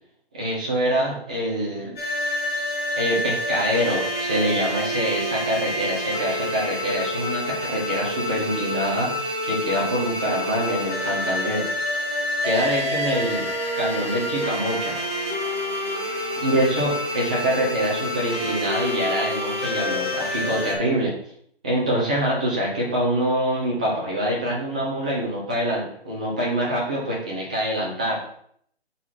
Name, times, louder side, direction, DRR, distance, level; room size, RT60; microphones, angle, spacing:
voice 1, 0.3-2.0 3.0-11.6 12.4-13.5 13.8-15.0 16.4-21.1 21.6-28.2, right 1 dB, 5° right, -4 dB, 0.6 m, -25 dB
sound 1, 2.0-20.7, left 1 dB, 20° left, 3.1 m, -27 dB
6.2 x 4.7 x 5.7 m, 0.65 s
hypercardioid pair, 165°, 32 cm